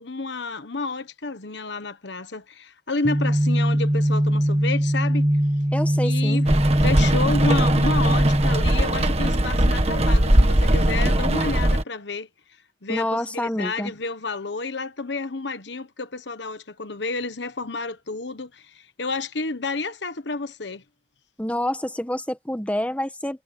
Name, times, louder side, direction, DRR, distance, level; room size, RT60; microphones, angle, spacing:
voice 1, 0.0-5.3 6.0-12.3 12.8-20.8, left 3 dB, 70° left, 1.3 m, -30 dB
sound 1, 3.0-8.6, equal, 20° right, 1.1 m, -21 dB
voice 2, 5.7-6.4 12.9-13.9 21.4-23.4, left 1 dB, 5° left, 1.4 m, -27 dB
Rain, 6.5-11.8, right 1 dB, 35° right, 1.6 m, -20 dB
head